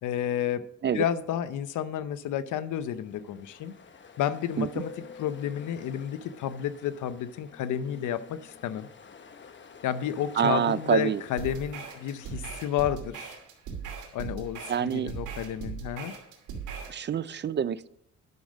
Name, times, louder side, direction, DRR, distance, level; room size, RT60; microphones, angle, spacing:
voice 1, 0.0-0.6 0.9-3.7 4.2-8.9 9.8-13.4 14.1-16.1, left 10 dB, 80° left, 14 dB, 0.8 m, -31 dB
Ocean, 2.2-13.3, left 5 dB, 40° left, 1.1 m, -50 dB
voice 2, 10.4-11.2 14.7-15.1 16.9-17.9, right 8 dB, 35° right, 18 dB, 0.5 m, -26 dB
sound 1, 11.4-17.0, right 6 dB, 80° right, 2.6 m, -39 dB
11.0 x 6.5 x 5.2 m, 0.70 s
cardioid pair, 90°, 30 cm